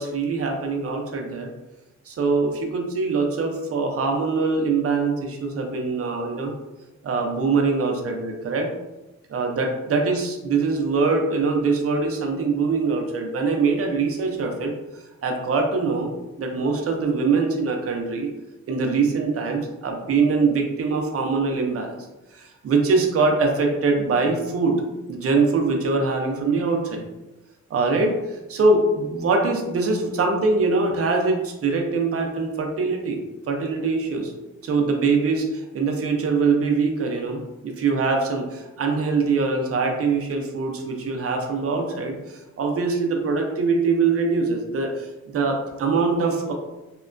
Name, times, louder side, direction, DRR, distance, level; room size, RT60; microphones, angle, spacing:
voice 1, 0.0-1.5 2.1-6.5 7.0-8.7 9.3-14.7 15.2-16.1 16.4-18.3 18.7-21.9 22.3-24.8 25.1-27.0 27.7-28.1 28.5-33.2 33.5-34.3 34.6-45.1 45.3-46.5, right 4 dB, 50° right, 2 dB, 0.5 m, -23 dB
2.8 x 2.2 x 2.4 m, 1.0 s
wide cardioid pair, 155°, 30 cm